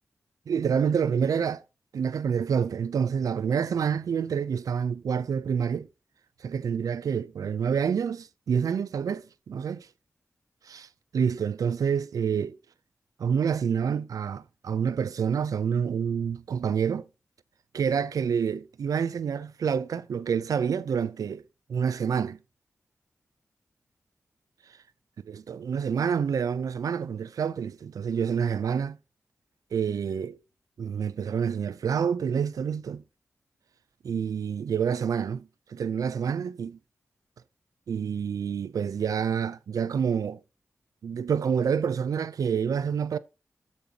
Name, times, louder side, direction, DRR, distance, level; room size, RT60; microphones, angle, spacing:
voice 1, 0.5-1.6 1.9-5.9 6.4-9.9 10.6-12.6 13.2-17.1 17.7-21.4 21.7-22.4 25.3-29.0 29.7-30.4 30.8-33.0 34.0-36.8 37.9-40.4 41.0-43.2, right 7 dB, 85° right, 0.5 m, -28 dB
13.5 x 5.4 x 2.9 m
cardioid pair, 45°, 6 cm